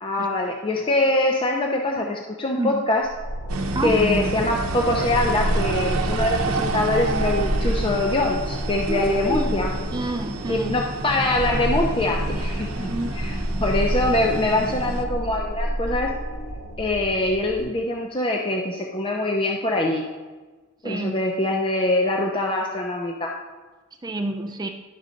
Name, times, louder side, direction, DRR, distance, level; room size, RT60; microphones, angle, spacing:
voice 1, 0.0-3.1 3.8-9.7 10.5-12.7 13.1-16.1 16.8-20.1 20.8-23.3, left 2 dB, 25° left, 0 dB, 0.6 m, -23 dB
sound 1, 3.0-17.6, equal, 70° left, 2.6 m, -29 dB
sound 2, 3.5-15.1, right 2 dB, 90° right, 0.8 m, -29 dB
voice 2, 8.9-9.5 9.9-10.8 12.8-13.2 20.8-21.1 24.0-24.7, right 1 dB, 20° right, 5 dB, 0.5 m, -28 dB
11.0 x 3.9 x 5.2 m, 1.3 s
head